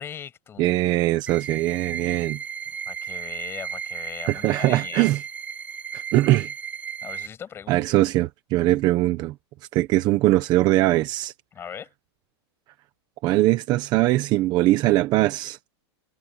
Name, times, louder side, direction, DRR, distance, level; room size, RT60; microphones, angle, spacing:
voice 1, 0.0-0.8 2.9-5.1 7.0-7.8 11.5-11.9, left 8 dB, 15° left, 7.8 m, -39 dB
voice 2, 0.6-2.4 4.3-5.2 5.9-6.5 7.7-9.3 9.7-11.3 13.2-15.6, right 17 dB, 30° right, 1.1 m, -21 dB
sound 1, 1.3-7.3, right 8 dB, 10° right, 2.9 m, -34 dB
supercardioid pair, 165°, 14 cm